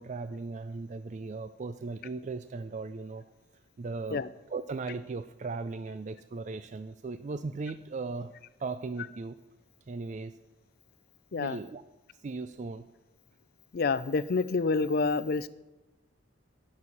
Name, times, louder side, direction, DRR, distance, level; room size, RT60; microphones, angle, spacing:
voice 1, 0.0-3.2 3.8-4.2 4.5-8.3 8.6-9.4 9.9-10.3 11.3-11.8 12.2-12.9, right 3 dB, 40° right, 11 dB, 0.4 m, -37 dB
voice 2, 13.7-15.5, left 4 dB, 50° left, 15 dB, 0.5 m, -27 dB
11.0 x 6.3 x 7.1 m, 0.96 s
head